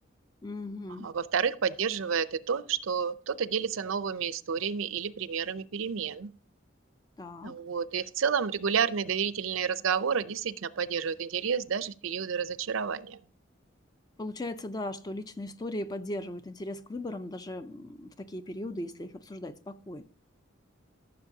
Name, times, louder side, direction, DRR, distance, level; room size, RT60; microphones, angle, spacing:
voice 1, 0.4-1.2 7.2-7.6 14.2-20.0, left 1 dB, 20° left, 0.4 m, -38 dB
voice 2, 1.0-6.3 7.4-13.2, right 6 dB, 85° right, 0.5 m, -30 dB
14.5 x 6.6 x 2.8 m
head